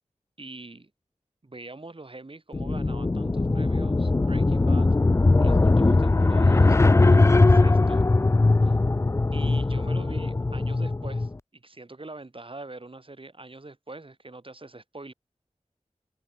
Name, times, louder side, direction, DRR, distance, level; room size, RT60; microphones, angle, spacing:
voice 1, 0.4-0.9 1.4-4.9 5.4-8.0 8.6-8.8 9.3-15.1, right 2 dB, 45° right, 2.9 m, -44 dB
sound 1, 2.5-11.3, left 3 dB, 20° left, 0.3 m, -20 dB
wide cardioid pair, 70°, 13 cm